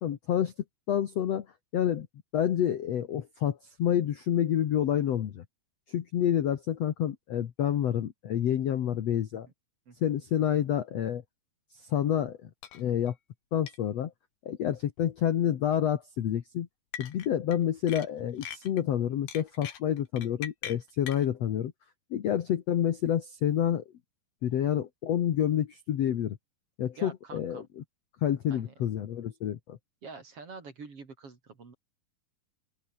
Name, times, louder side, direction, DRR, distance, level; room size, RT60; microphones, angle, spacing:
voice 1, 0.0-0.5 0.9-1.5 1.7-2.1 2.3-5.4 5.9-9.5 10.0-11.2 11.8-13.2 13.5-14.1 14.5-16.7 17.0-21.7 22.1-23.8 24.4-26.4 26.8-27.8 28.2-29.8, left 10 dB, 60° left, 1.8 m, -28 dB
sound 1, 12.6-12.8 13.1-13.2 13.7-13.8 15.0-15.3 16.9-17.6 17.9-18.8 19.3-21.3, left 9 dB, 85° left, 4.5 m, -41 dB
voice 2, 27.0-27.7 28.5-28.7 30.0-31.7, right 4 dB, 40° right, 4.1 m, -46 dB
open air
omnidirectional pair, 4.5 m